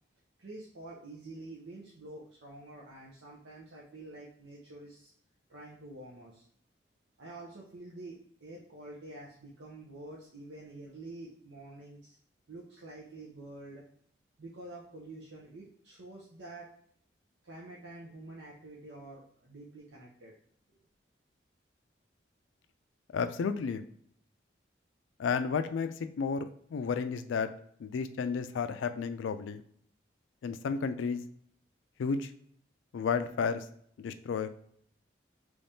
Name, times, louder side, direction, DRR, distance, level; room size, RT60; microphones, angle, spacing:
voice 1, 0.4-5.1 5.5-6.5 7.2-12.2 12.5-13.8 14.4-16.7 17.4-20.3 20.8-20.9, right 2 dB, 85° right, -4 dB, 0.7 m, -48 dB
voice 2, 23.1-23.8 25.2-25.9 26.2-27.5 27.8-29.6 30.4-31.2 32.0-32.3 32.9-33.6 34.0-34.5, left 5 dB, 85° left, 10 dB, 0.3 m, -32 dB
3.4 x 3.1 x 2.7 m, 0.63 s
head